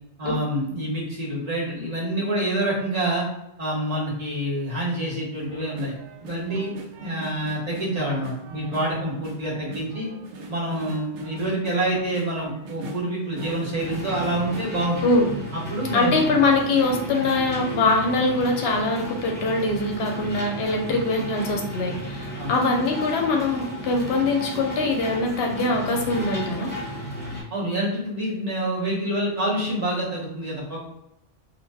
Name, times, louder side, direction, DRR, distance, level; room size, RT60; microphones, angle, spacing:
voice 1, 0.2-3.3 3.6-5.9 6.2-6.7 7.0-10.1 10.5-15.0 15.5-16.1 20.9-21.0 22.4-22.5 27.5-30.8, right 1 dB, 40° right, -5 dB, 0.9 m, -27 dB
sound 1, 5.4-15.7 16.1-18.6 19.1-19.2 19.5-19.8 20.3-21.2 21.6-21.7, right 3 dB, 80° right, 0.9 m, -43 dB
sound 2, 13.7-27.4, equal, 10° left, 0.8 m, -34 dB
voice 2, 15.9-26.7, left 2 dB, 65° left, 1 dB, 0.8 m, -23 dB
2.5 x 2.2 x 3.2 m, 0.84 s
omnidirectional pair, 1.2 m